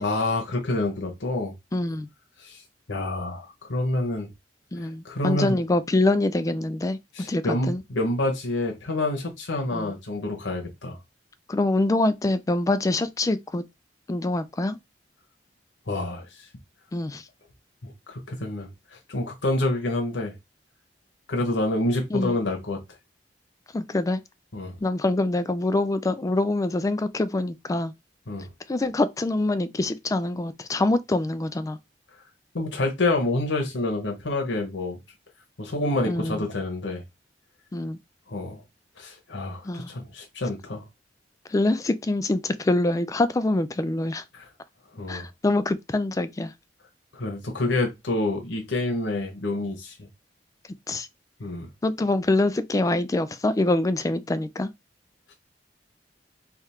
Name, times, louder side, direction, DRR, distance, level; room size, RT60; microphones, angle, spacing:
voice 1, 0.0-1.5 2.4-2.6 2.9-4.3 4.8-5.6 7.1-11.0 15.9-16.5 17.8-20.3 21.3-22.8 24.5-24.7 28.3-28.5 32.5-35.0 35.6-37.0 38.3-38.6 39.0-40.8 44.3-44.5 44.9-45.3 47.1-49.9 51.4-51.7, left 2 dB, 90° left, 0.9 m, -28 dB
voice 2, 1.7-2.1 4.7-7.0 7.3-7.8 9.7-9.9 11.5-13.6 14.1-14.8 16.9-17.2 22.1-22.3 23.7-24.2 24.8-27.9 28.7-31.8 36.0-36.4 37.7-38.0 39.6-39.9 41.5-44.2 45.1-46.5 50.9-51.1 51.8-54.7, left 2 dB, 20° left, 0.3 m, -25 dB
3.4 x 2.4 x 4.2 m
head